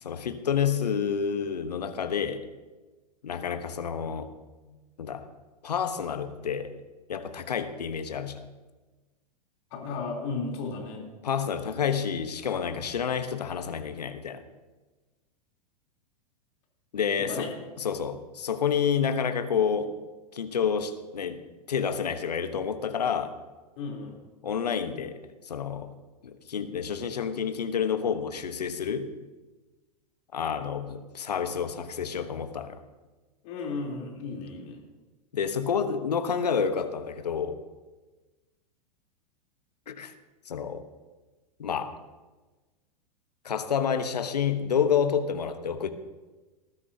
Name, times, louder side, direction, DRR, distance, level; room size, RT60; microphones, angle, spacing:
voice 1, 0.0-2.4 3.2-4.3 5.0-5.2 5.6-6.7 7.1-8.5 11.2-14.4 16.9-17.5 17.8-20.0 20.3-21.4 21.7-23.3 24.4-25.2 25.5-25.9 26.2-29.1 30.3-32.8 35.3-37.6 39.9-40.1 40.5-40.8 41.6-41.9 43.4-45.9, left 7 dB, 75° left, 10 dB, 1.1 m, -29 dB
voice 2, 9.7-11.0 17.2-17.5 23.8-24.2 33.4-34.8, left 4 dB, 50° left, -1 dB, 3.5 m, -34 dB
19.5 x 12.5 x 2.8 m, 1.2 s
figure-of-eight pair, 95°, 21 cm